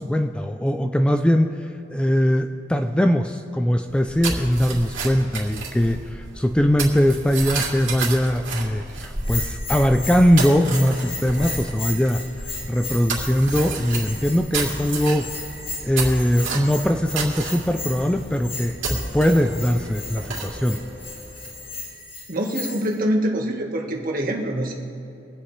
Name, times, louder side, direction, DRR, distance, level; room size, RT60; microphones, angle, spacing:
voice 1, 0.0-12.2 12.6-15.3 15.8-20.8, equal, 5° left, 6 dB, 0.3 m, -21 dB
sound 1, 3.9-21.8, right 3 dB, 85° right, 2.7 m, -32 dB
Bell, 9.2-23.0, left 3 dB, 30° left, 1.9 m, -36 dB
voice 2, 22.3-24.7, right 1 dB, 50° right, 0 dB, 1.6 m, -24 dB
23.5 x 8.5 x 3.3 m, 2.8 s
head